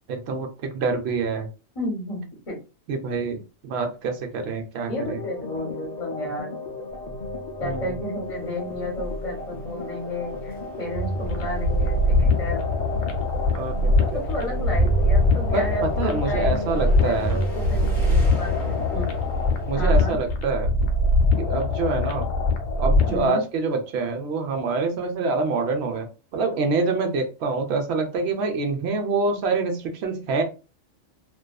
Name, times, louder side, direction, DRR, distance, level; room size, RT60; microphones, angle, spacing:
voice 1, 0.1-0.5 0.7-1.5 2.9-5.2 7.6-8.0 13.5-14.2 15.5-17.4 19.7-20.7 21.4-22.3 22.8-30.4, right 4 dB, 65° right, 4 dB, 0.7 m, -26 dB
voice 2, 1.7-2.6 4.8-6.5 7.6-12.7 14.1-19.0 19.7-20.2 23.1-23.4, equal, 30° left, -2 dB, 0.8 m, -32 dB
sound 1, 4.9-19.0, left 3 dB, 60° left, 0.4 m, -36 dB
sound 2, 6.9-19.9, right 2 dB, ahead, 1.0 m, -34 dB
sound 3, 11.2-23.3, left 2 dB, 80° left, 1.0 m, -22 dB
2.5 x 2.2 x 2.2 m, 0.31 s
omnidirectional pair, 1.3 m